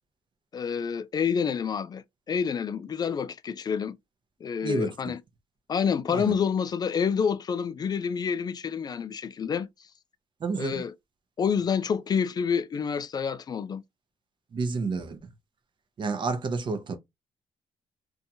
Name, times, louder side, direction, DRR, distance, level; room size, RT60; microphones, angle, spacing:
voice 1, 0.5-4.0 4.4-5.2 5.7-9.7 10.6-10.9 11.4-13.8, left 6 dB, 40° left, 0.4 m, -28 dB
voice 2, 4.6-4.9 6.1-6.3 10.4-10.8 14.5-15.3 16.0-17.0, right 4 dB, 45° right, 0.7 m, -30 dB
2.6 x 2.3 x 2.7 m
cardioid pair, 105°, 11 cm